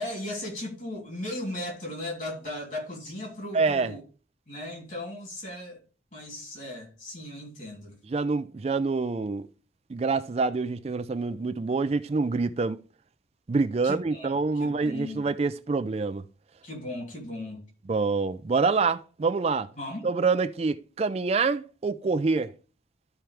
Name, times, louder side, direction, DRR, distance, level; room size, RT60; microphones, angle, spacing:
voice 1, 0.0-4.0 4.5-5.8 6.1-7.9 13.8-15.2 16.6-17.6 19.8-20.0, left 1 dB, 45° left, 2.9 m, -37 dB
voice 2, 3.5-3.9 8.1-9.5 9.9-12.8 13.5-16.2 17.9-19.7 20.0-22.5, right 4 dB, 35° right, 0.4 m, -26 dB
12.5 x 4.5 x 3.4 m
head